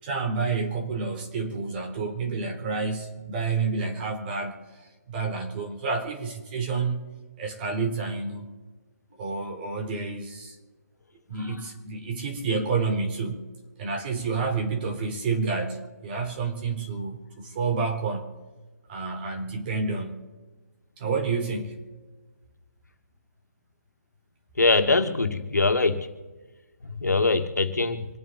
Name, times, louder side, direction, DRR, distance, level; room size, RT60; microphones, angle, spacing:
voice 1, 0.0-7.0 7.4-8.5 9.2-10.6 11.3-13.4 13.8-18.3 18.9-20.2 21.0-21.8, right 4 dB, 35° right, 3 dB, 3.7 m, -29 dB
voice 2, 24.6-26.1 26.8-28.1, left 3 dB, 85° left, 6 dB, 2.1 m, -23 dB
27.0 x 9.1 x 4.2 m, 1.3 s
figure-of-eight pair, 145°, 9 cm